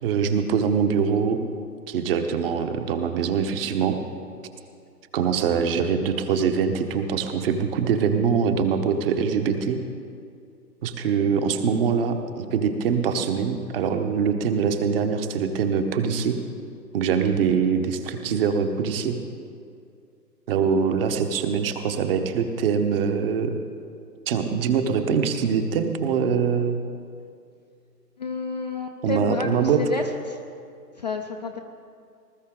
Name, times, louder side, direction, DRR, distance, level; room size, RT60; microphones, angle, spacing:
voice 1, 0.0-1.4 1.9-4.0 5.1-9.8 10.8-16.4 16.9-19.2 20.5-23.6 24.3-26.8 29.0-29.8, right 6 dB, 35° right, 6 dB, 1.0 m, -23 dB
voice 2, 28.2-30.4 31.0-31.6, left 4 dB, 30° left, 2 dB, 0.4 m, -30 dB
20.0 x 13.5 x 3.7 m, 2.4 s
figure-of-eight pair, 125°, 49 cm